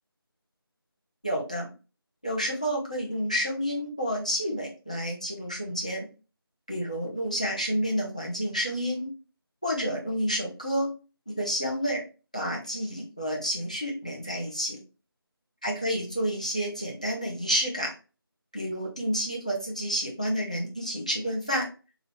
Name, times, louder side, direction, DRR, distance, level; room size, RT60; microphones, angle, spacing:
voice 1, 1.2-1.7 2.2-6.1 6.7-9.1 9.6-10.9 11.3-12.0 12.3-14.8 15.6-17.9 18.5-21.7, equal, 15° left, -2 dB, 0.5 m, -29 dB
3.5 x 2.2 x 3.4 m, 0.33 s
figure-of-eight pair, 175°, 13 cm